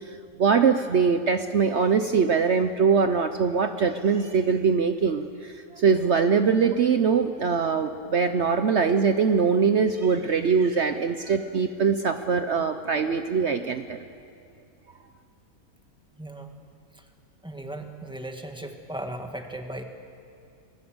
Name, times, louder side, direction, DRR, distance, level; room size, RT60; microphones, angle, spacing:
voice 1, 0.1-14.1, right 5 dB, 55° right, 8 dB, 1.0 m, -22 dB
voice 2, 16.1-16.6 16.9-17.1 17.4-19.8, right 1 dB, 5° right, 4 dB, 1.8 m, -37 dB
28.5 x 20.5 x 7.9 m, 2.4 s
omnidirectional pair, 1.6 m